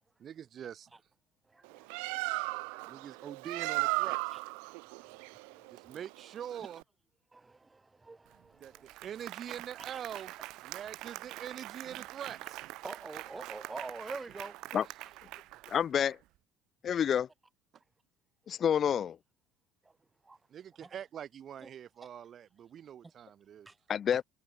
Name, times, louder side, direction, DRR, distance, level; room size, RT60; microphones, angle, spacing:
voice 1, 0.2-0.9 2.9-4.4 5.7-6.8 8.6-8.7 9.0-10.3 10.6-12.6 20.5-23.7, right 9 dB, 40° right, 4.6 m, -44 dB
voice 2, 1.4-3.1 4.3-6.0 7.3-8.9 12.8-14.6 15.0-15.1 19.8-20.0 20.2-20.4 20.8-20.9 21.6-21.7 22.0-22.1 23.7-23.8, right 3 dB, 15° right, 4.4 m, -47 dB
Bird, 1.6-6.8, right 40 dB or more, 90° right, 0.5 m, -35 dB
Applause, 8.3-8.4 8.6-16.2, right 18 dB, 65° right, 1.8 m, -45 dB
voice 3, 15.7-16.2 16.8-17.3 18.5-19.2 23.9-24.2, left 8 dB, 35° left, 0.4 m, -28 dB
cardioid pair, 135°, 0 cm